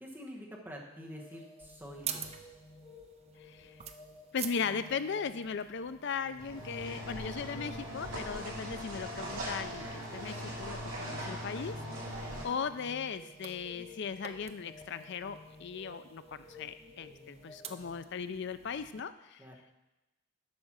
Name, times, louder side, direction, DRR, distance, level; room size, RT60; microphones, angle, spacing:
voice 1, 0.0-2.3 19.4-19.6, equal, 10° right, -2 dB, 1.3 m, -47 dB
sound 1, 0.9-18.0, left 2 dB, 15° left, 1.7 m, -54 dB
sound 2, 1.6-19.0, right 8 dB, 30° right, 0.4 m, -49 dB
voice 2, 3.4-3.8 4.3-11.7 12.1-12.2 12.4-19.4, left 6 dB, 55° left, 12 dB, 0.4 m, -38 dB
sound 3, 6.4-12.4, equal, 70° right, 3.1 m, -40 dB
8.5 x 5.4 x 6.2 m, 0.99 s
head